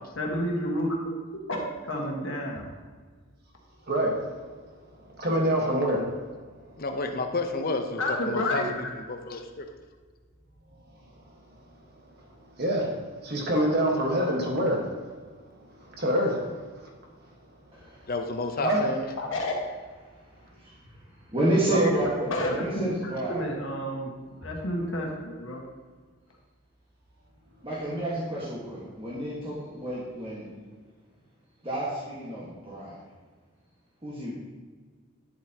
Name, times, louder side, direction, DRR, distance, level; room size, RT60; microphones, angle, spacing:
voice 1, 0.2-0.9 1.5-1.6 1.8-2.7 8.0-8.6 19.2-19.5 22.3-24.1 24.4-25.6, left 1 dB, 60° left, 1.5 m, -30 dB
voice 2, 3.9-4.2 5.2-6.1 8.5-8.7 12.6-12.9 13.2-14.9 16.0-16.4 18.6-19.0 21.7-22.0 22.4-22.5, right 1 dB, 45° right, 1.5 m, -25 dB
voice 3, 6.8-8.6 9.0-9.7 18.1-19.1, left 3 dB, 40° left, 0.7 m, -30 dB
voice 4, 21.3-23.5 27.6-30.5 31.6-33.0 34.0-34.3, right 1 dB, 25° right, 1.5 m, -29 dB
10.5 x 7.5 x 2.9 m
head